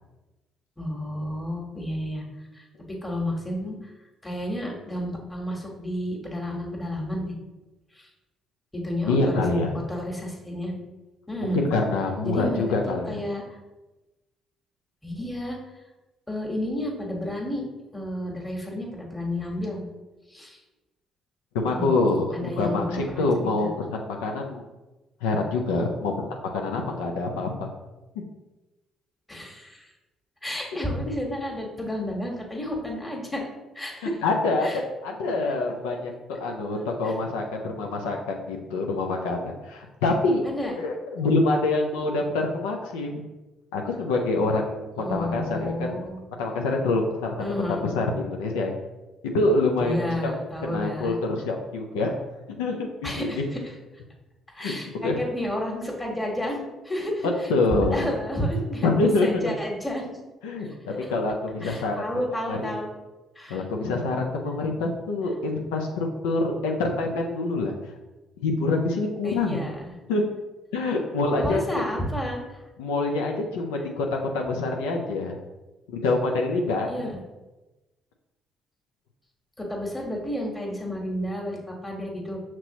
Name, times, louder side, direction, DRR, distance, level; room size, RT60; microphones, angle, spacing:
voice 1, 0.8-2.2 2.5-3.9 4.2-7.3 7.9-8.1 8.7-9.3 9.9-10.7 11.3-11.7 12.2-13.4 15.0-15.6 16.3-17.6 17.9-19.8 20.3-20.6 21.7-21.9 22.3-23.2 23.6-23.7 29.3-29.9 30.4-33.5 33.7-34.2 34.6-34.8 36.8-37.1 40.4-40.7 42.0-42.2 45.0-46.2 47.4-47.8 49.8-51.1 53.0-53.4 54.5-57.5 57.8-60.2 60.6-61.1 61.6-62.9 63.3-63.6 69.2-69.9 71.3-72.6 76.9-77.2 79.6-82.4, equal, 15° left, -1 dB, 1.5 m, -31 dB
voice 2, 9.1-9.7 11.5-13.2 21.5-24.7 25.2-26.1 26.5-27.7 34.2-34.7 35.0-43.2 43.7-46.0 46.4-48.7 49.3-50.3 50.6-52.1 52.6-53.4 54.6-54.7 55.0-55.2 57.5-58.1 58.8-59.5 60.4-62.0 62.5-62.8 63.5-67.7 68.4-69.7 70.1-70.3 70.7-71.8 72.8-74.0 74.3-75.4 75.9-77.1, left 3 dB, 80° left, 1 dB, 0.5 m, -26 dB
5.9 x 2.9 x 2.9 m, 1.1 s
hypercardioid pair, 50°, 0 cm